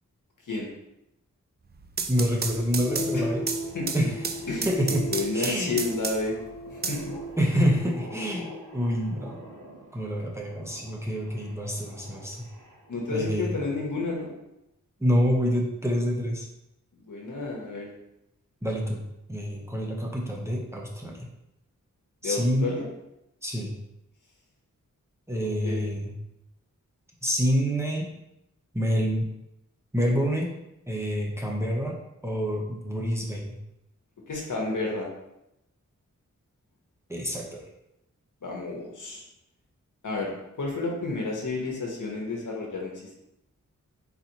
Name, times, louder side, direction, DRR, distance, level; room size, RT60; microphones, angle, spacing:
sound 1, 1.7-6.4 6.8-7.8, right 5 dB, 35° right, 0.4 m, -33 dB
voice 1, 2.1-3.4 3.9-5.1 5.3-5.7 7.4-9.4 9.9-12.5 13.1-13.6 15.0-16.5 18.6-21.3 22.2-22.7 23.4-23.7 25.3-26.1 27.2-28.1 28.7-29.3 29.9-30.5 30.9-33.5 37.1-37.6, equal, 10° right, -2 dB, 0.8 m, -27 dB
sound 2, 2.9-9.4, equal, 50° left, 0.5 m, -37 dB
sound 3, 3.2-13.2, right 1 dB, 90° right, 0.8 m, -48 dB
voice 2, 5.1-6.4 6.7-7.1 12.9-14.3 17.0-17.9 22.2-22.8 25.4-25.8 34.3-35.1 38.4-39.2 40.0-43.2, left 3 dB, 75° left, -1 dB, 1.1 m, -31 dB
4.1 x 4.1 x 2.9 m, 0.86 s
wide cardioid pair, 110°, 31 cm